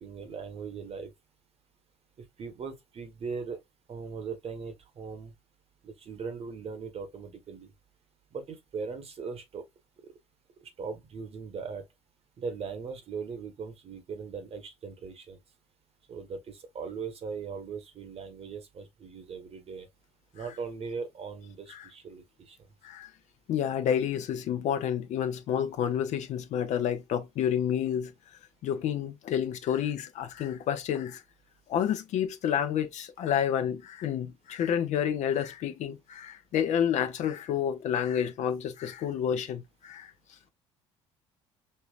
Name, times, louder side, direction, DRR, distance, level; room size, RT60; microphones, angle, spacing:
voice 1, 0.0-1.1 2.2-3.6 3.9-5.3 5.8-7.7 8.3-9.6 10.6-11.8 12.4-15.4 16.1-19.9 20.3-22.6, right 5 dB, 40° right, 1.3 m, -39 dB
voice 2, 23.5-28.1 28.6-31.2 31.7-40.1, left 9 dB, 50° left, 0.8 m, -29 dB
5.5 x 2.9 x 2.4 m
figure-of-eight pair, 55°, 15 cm